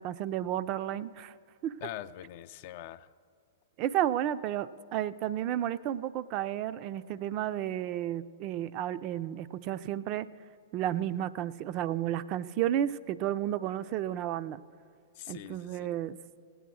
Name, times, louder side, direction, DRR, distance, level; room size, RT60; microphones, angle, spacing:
voice 1, 0.0-1.3 1.6-1.8 3.8-10.3 10.7-14.6 15.3-16.2, right 11 dB, 40° right, 13 dB, 0.4 m, -32 dB
voice 2, 1.8-3.1 15.2-15.9, left 12 dB, 50° left, 13 dB, 0.4 m, -43 dB
17.0 x 9.4 x 6.2 m, 2.2 s
figure-of-eight pair, 110°, 0 cm